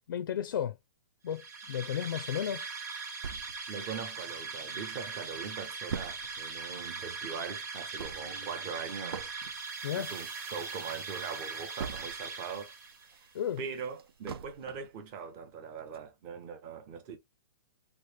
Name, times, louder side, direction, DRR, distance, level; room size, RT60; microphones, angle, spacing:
voice 1, 0.1-0.8 1.2-2.7 9.8-10.1 13.3-13.6, left 9 dB, 65° left, 0.4 m, -33 dB
sound 1, 1.3-13.1, right 4 dB, 45° right, 1.1 m, -40 dB
sound 2, 3.2-4.8 5.2-5.3 5.4-12.4 12.8-15.0 15.4-15.5 15.9-16.0, right 7 dB, 90° right, 0.4 m, -43 dB
voice 2, 3.7-9.3 10.0-12.7 13.1-13.3 13.6-17.2, right 6 dB, 20° right, 0.5 m, -41 dB
sound 3, 9.3-14.4, right 4 dB, 75° right, 1.3 m, -54 dB
3.0 x 2.4 x 3.1 m
hypercardioid pair, 170°, 12 cm